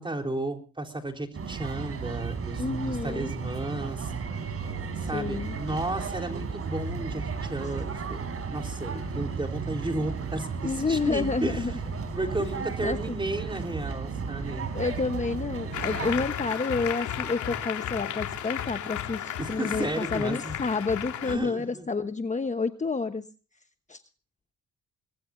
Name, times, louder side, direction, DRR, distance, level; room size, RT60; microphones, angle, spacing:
voice 1, 0.0-4.1 5.0-14.7 19.4-20.5 21.2-21.9, right 2 dB, 15° right, 4 dB, 4.0 m, -34 dB
sound 1, 1.3-16.3, right 5 dB, 50° right, 4.9 m, -34 dB
voice 2, 2.6-3.3 5.1-5.6 10.6-11.7 12.8-13.1 14.7-23.2 23.9-24.0, left 4 dB, 25° left, 8 dB, 1.2 m, -29 dB
Applause, 15.7-21.4, left 9 dB, 75° left, 3.7 m, -34 dB
24.5 x 20.0 x 2.7 m, 0.36 s
cardioid pair, 90°, 30 cm